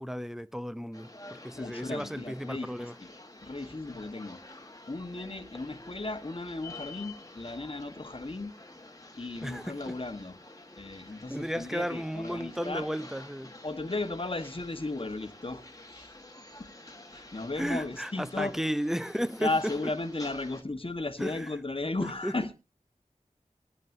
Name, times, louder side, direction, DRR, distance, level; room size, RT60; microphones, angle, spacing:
voice 1, 0.0-2.9 9.4-10.0 11.3-13.5 17.6-19.5 21.2-21.5 22.0-22.3, equal, 5° right, 0.7 m, -34 dB
sound 1, 0.9-20.6, left 2 dB, 25° left, 1.4 m, -49 dB
voice 2, 1.5-3.1 3.4-4.4 4.9-8.5 9.2-10.4 10.8-12.9 13.6-15.6 15.9-16.1 16.6-16.7 17.1-18.5 19.4-22.5, left 2 dB, 40° left, 1.3 m, -35 dB
25.0 x 9.3 x 2.7 m
wide cardioid pair, 45°, 14 cm